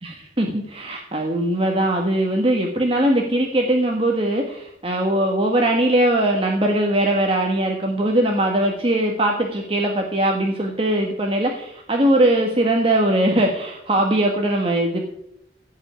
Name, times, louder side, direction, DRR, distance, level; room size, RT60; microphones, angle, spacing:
voice 1, 0.0-15.0, right 1 dB, 30° right, 1 dB, 1.5 m, -20 dB
16.5 x 5.5 x 8.9 m, 0.78 s
head